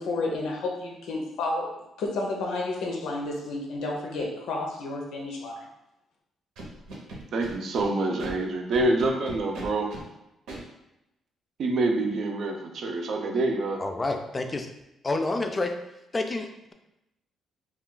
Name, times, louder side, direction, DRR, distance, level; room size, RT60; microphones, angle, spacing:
voice 1, 0.0-1.7 2.0-5.6, left 2 dB, 80° left, 0 dB, 0.6 m, -31 dB
Scratching (performance technique), 6.6-7.9 8.2-8.3 8.7-10.0 10.5-10.6, right 2 dB, 85° right, 0.8 m, -39 dB
voice 2, 7.3-9.9 11.6-13.8, right 2 dB, 65° right, 3 dB, 0.5 m, -26 dB
voice 3, 13.8-14.7 15.0-15.7 16.1-16.7, left 2 dB, 25° left, 5 dB, 0.4 m, -29 dB
2.3 x 2.3 x 3.7 m, 0.90 s
cardioid pair, 90°, 0 cm